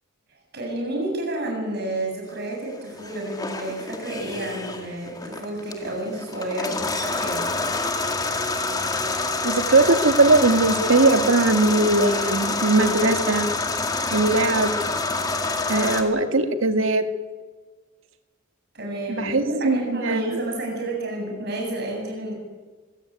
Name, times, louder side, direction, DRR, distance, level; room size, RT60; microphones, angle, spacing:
voice 1, 0.5-7.6 18.7-22.3, right 1 dB, 50° right, 1 dB, 7.9 m, -30 dB
sound 1, 2.9-16.0, left 3 dB, 20° left, 2.1 m, -27 dB
voice 2, 9.4-13.5 14.1-14.7 15.7-17.1 19.1-20.4, right 2 dB, 75° right, 8 dB, 1.9 m, -20 dB
23.5 x 16.0 x 9.1 m, 1.4 s
head